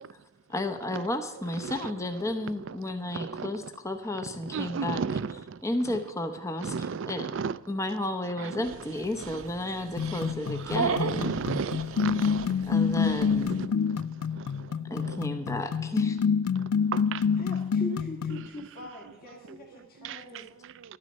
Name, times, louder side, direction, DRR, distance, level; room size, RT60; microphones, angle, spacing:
voice 1, 0.5-5.0 5.6-7.3 7.7-11.3 12.7-13.6 14.9-16.2, left 1 dB, 15° left, 0.7 m, -32 dB
voice 2, 3.1-3.5 4.5-5.4 6.6-7.5 10.6-10.8 11.1-12.2 13.6-13.7 16.9-17.2 20.0-20.2, right 5 dB, 55° right, 0.4 m, -32 dB
voice 3, 8.3-9.6 17.4-20.5, equal, 40° left, 1.8 m, -44 dB
Dog, 8.6-13.7, right 5 dB, 70° right, 0.8 m, -36 dB
sound 1, 10.0-18.5, left 6 dB, 75° left, 0.3 m, -28 dB
11.5 x 9.6 x 5.3 m
head